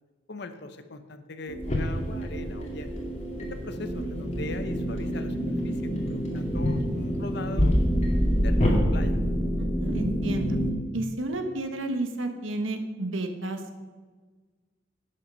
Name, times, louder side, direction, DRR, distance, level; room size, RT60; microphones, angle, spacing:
voice 1, 0.3-2.9 3.5-7.8 8.4-9.2, left 2 dB, 55° left, 10 dB, 0.8 m, -40 dB
sound 1, 1.5-10.7, equal, 10° left, 1.1 m, -28 dB
sound 2, 1.6-8.8, left 1 dB, 35° left, 2.1 m, -30 dB
voice 2, 9.6-10.6 10.9-13.8, right 2 dB, 80° right, 6 dB, 1.2 m, -31 dB
11.0 x 8.0 x 5.5 m, 1.4 s
head